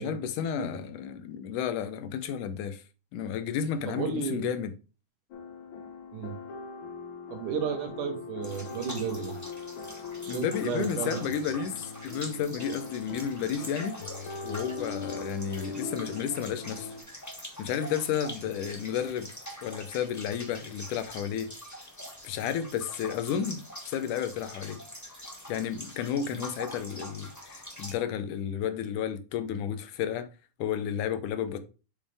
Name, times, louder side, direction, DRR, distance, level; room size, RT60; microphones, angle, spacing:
voice 1, 0.0-2.8 3.1-4.7 10.3-11.8 12.0-14.0 14.4-16.9 17.6-19.3 19.6-21.5 22.2-24.8 25.5-30.3 30.6-31.6, left 8 dB, 80° left, 2.3 m, -32 dB
voice 2, 3.9-4.5 6.1-6.3 7.3-9.3 10.2-11.2, right 6 dB, 80° right, 2.9 m, -33 dB
sound 1, 5.3-17.0, left 4 dB, 60° left, 1.5 m, -40 dB
sound 2, 8.4-27.9, equal, 15° left, 0.6 m, -44 dB
7.3 x 5.2 x 3.4 m
omnidirectional pair, 3.6 m